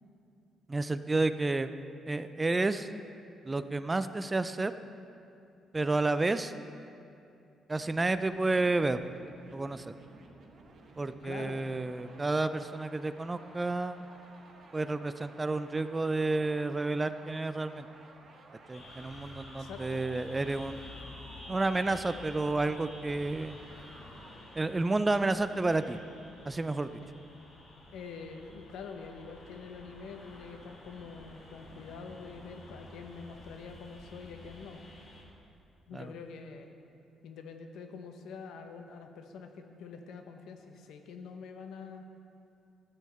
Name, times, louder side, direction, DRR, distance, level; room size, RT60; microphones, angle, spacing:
voice 1, 0.7-1.7 2.1-2.9 3.5-4.7 5.7-6.5 7.7-9.0 9.5-9.9 11.0-14.0 14.7-17.9 18.7-20.9 21.5-23.6 24.5-26.0 26.5-26.9 35.9-36.1, right 2 dB, 20° right, 12 dB, 0.4 m, -30 dB
sound 1, 7.8-24.3 24.8-26.0, right 3 dB, 55° right, 1.4 m, -55 dB
voice 2, 11.2-11.7 19.6-20.0 27.0-27.1 27.9-34.8 35.9-36.7 37.2-42.1, left 5 dB, 80° left, 6 dB, 0.8 m, -45 dB
sound 2, 18.7-35.2, left 1 dB, 65° left, 2.3 m, -50 dB
12.0 x 8.3 x 4.3 m, 2.6 s
cardioid pair, 90°, 0 cm